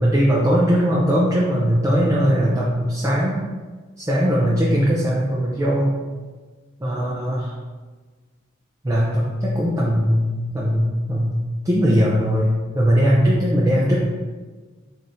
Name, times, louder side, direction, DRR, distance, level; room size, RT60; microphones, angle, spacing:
voice 1, 0.0-3.4 4.0-5.9 6.8-7.5 8.8-11.3 11.6-14.0, equal, 15° right, -6 dB, 0.5 m, -19 dB
4.2 x 3.5 x 2.6 m, 1.3 s
head